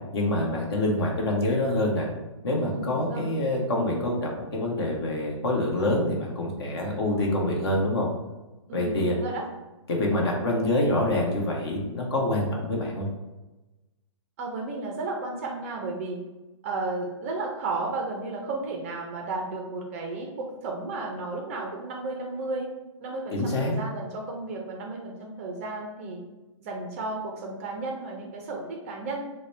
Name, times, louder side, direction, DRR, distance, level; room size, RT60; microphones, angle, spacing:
voice 1, 0.1-2.1 2.4-8.1 8.7-9.2 9.9-13.1 23.3-23.7, left 1 dB, 55° left, -1 dB, 1.0 m, -26 dB
voice 2, 2.6-3.3 8.7-9.5 14.4-16.2 16.6-22.7 23.0-26.2 26.6-29.2, right 3 dB, 25° right, 1 dB, 0.4 m, -33 dB
4.0 x 2.1 x 3.1 m, 1.1 s
hypercardioid pair, 155°, 17 cm